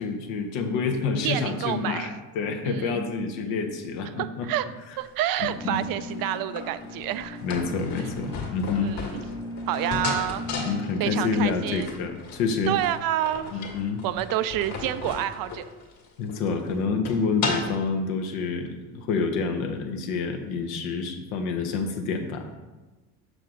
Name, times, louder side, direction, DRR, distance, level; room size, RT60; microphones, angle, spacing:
voice 1, 0.0-4.5 5.4-5.8 7.4-8.9 10.6-12.7 13.5-14.0 16.2-22.6, left 4 dB, 80° left, 5 dB, 1.1 m, -28 dB
voice 2, 1.2-2.1 2.7-3.0 4.2-4.6 5.0-7.4 8.8-9.0 9.7-10.5 11.0-11.9 12.7-13.5 14.0-15.6, right 12 dB, 55° right, 13 dB, 0.4 m, -28 dB
sound 1, 5.0-17.9, left 4 dB, 50° left, 1.9 m, -36 dB
sound 2, 5.5-11.5, left 1 dB, 10° left, 0.6 m, -37 dB
6.6 x 6.2 x 3.8 m, 1.2 s
supercardioid pair, 90°, 44 cm